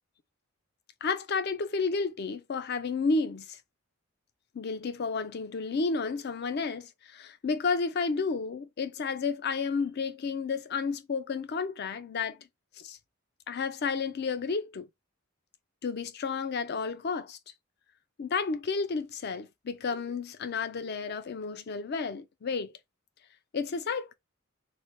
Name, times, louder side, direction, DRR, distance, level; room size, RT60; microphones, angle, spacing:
voice 1, 1.0-3.6 4.5-12.4 12.8-13.0 13.5-14.9 15.8-17.4 18.2-22.7 23.5-24.1, left 4 dB, 50° left, 0.4 m, -31 dB
3.1 x 2.1 x 2.7 m
head